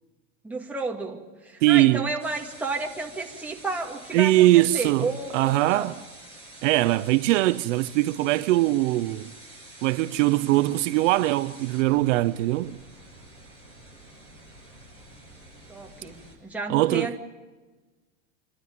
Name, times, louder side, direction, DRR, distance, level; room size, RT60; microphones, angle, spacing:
voice 1, 0.4-5.9 15.7-17.2, right 3 dB, 5° right, 2.1 m, -32 dB
voice 2, 1.6-2.0 4.1-5.9 6.6-9.3 9.8-12.8 16.7-17.1, right 17 dB, 65° right, 0.7 m, -21 dB
sound 1, 2.2-16.3, right 1 dB, 15° left, 7.1 m, -48 dB
28.0 x 12.5 x 9.5 m
supercardioid pair, 150°, 40 cm